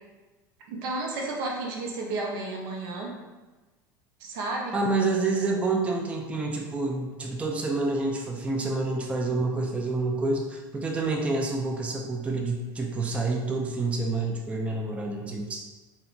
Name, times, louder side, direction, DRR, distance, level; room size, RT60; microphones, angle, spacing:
voice 1, 0.7-3.1 4.2-4.8, right 2 dB, 70° right, -1 dB, 0.6 m, -32 dB
voice 2, 4.7-15.6, right 3 dB, 10° right, 0 dB, 0.3 m, -28 dB
2.7 x 2.1 x 2.4 m, 1.2 s
hypercardioid pair, 95°, 11 cm